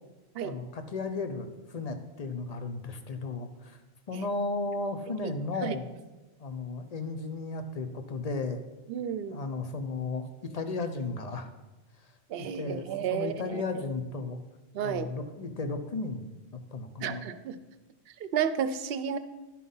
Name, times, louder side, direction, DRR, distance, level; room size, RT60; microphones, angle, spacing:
voice 1, 0.4-3.8 4.1-5.9 6.4-8.7 9.3-11.5 12.0-12.1 12.5-14.4 14.8-16.4 16.7-17.2, left 3 dB, 40° left, 8 dB, 0.8 m, -35 dB
voice 2, 8.9-9.4 12.3-13.6 14.7-15.1 17.0-17.6 18.2-19.2, right 8 dB, 65° right, 12 dB, 0.8 m, -32 dB
11.5 x 5.9 x 5.5 m, 1.1 s
omnidirectional pair, 1.1 m